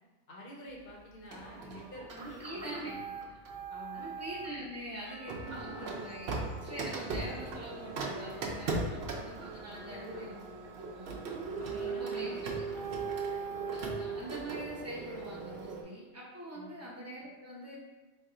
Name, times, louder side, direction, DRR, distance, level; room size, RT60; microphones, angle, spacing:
voice 1, 0.3-3.3 3.7-4.1 5.5-6.0 9.7-10.3 11.6-12.5 16.5-16.7, left 1 dB, 50° left, -2 dB, 0.8 m, -49 dB
Printer, 1.3-4.6 5.3-15.8, right 4 dB, 65° right, 0.6 m, -38 dB
voice 2, 2.2-2.9 3.9-6.3 6.6-10.4 10.7-11.2 11.6-12.4 13.4-17.8, right 1 dB, 20° right, -6 dB, 0.5 m, -43 dB
Percussion / Church bell, 5.1-8.9, equal, 70° left, 1.0 m, -54 dB
3.6 x 2.2 x 3.7 m, 1.2 s
omnidirectional pair, 1.4 m